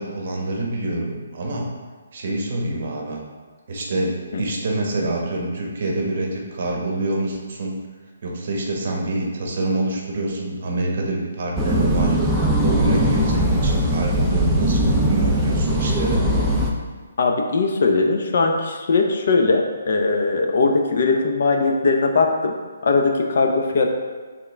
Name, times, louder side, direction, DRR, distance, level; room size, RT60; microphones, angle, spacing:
voice 1, 0.0-1.7 2.1-3.2 3.7-7.7 8.2-12.2 12.6-16.3, right 2 dB, 45° right, 0 dB, 1.1 m, -26 dB
sound 1, 11.6-16.7, right 1 dB, 5° right, 0.5 m, -20 dB
voice 2, 17.2-22.5 22.8-23.9, left 3 dB, 50° left, 3 dB, 0.7 m, -20 dB
8.2 x 3.6 x 3.3 m, 1.5 s
hypercardioid pair, 170°, 0 cm